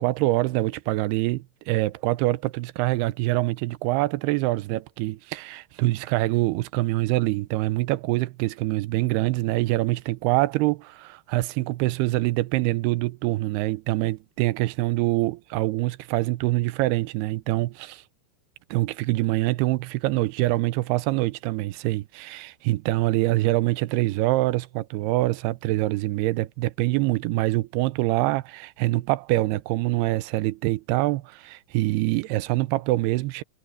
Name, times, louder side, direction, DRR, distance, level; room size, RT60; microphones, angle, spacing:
voice 1, 0.0-18.0 18.7-33.4, right 19 dB, 80° right, 2.5 m, -25 dB
omnidirectional pair, 4.9 m